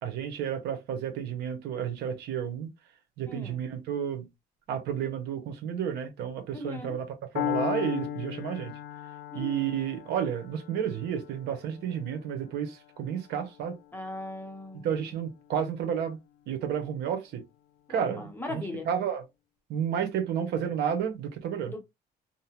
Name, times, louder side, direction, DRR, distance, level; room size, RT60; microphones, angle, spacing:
voice 1, 0.0-2.7 3.2-4.3 4.7-7.1 7.3-8.7 9.3-13.8 14.8-16.2 16.5-17.4 17.9-19.2 19.7-21.7, right 8 dB, 80° right, 0.8 m, -31 dB
voice 2, 3.2-3.6 6.5-7.0 9.3-9.6 13.9-15.0 17.9-18.9 21.7-21.8, left 2 dB, 10° left, 0.9 m, -39 dB
Piano, 7.4-15.3, left 12 dB, 90° left, 0.4 m, -38 dB
2.8 x 2.1 x 2.8 m
cardioid pair, 110°, 17 cm